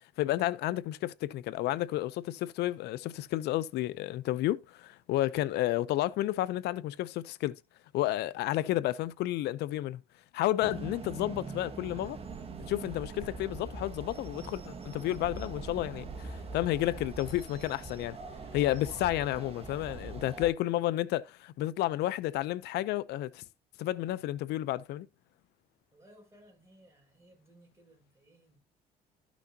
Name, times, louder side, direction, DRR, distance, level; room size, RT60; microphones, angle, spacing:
voice 1, 0.2-7.6 7.9-10.0 10.3-12.2 12.7-18.2 18.5-23.4 23.8-25.1, left 15 dB, 75° left, 0.6 m, -31 dB
sound 1, 10.6-20.5, right 4 dB, 35° right, 1.7 m, -42 dB
voice 2, 25.9-28.6, right 1 dB, 15° right, 5.6 m, -60 dB
13.0 x 6.2 x 2.8 m
cardioid pair, 110°, 17 cm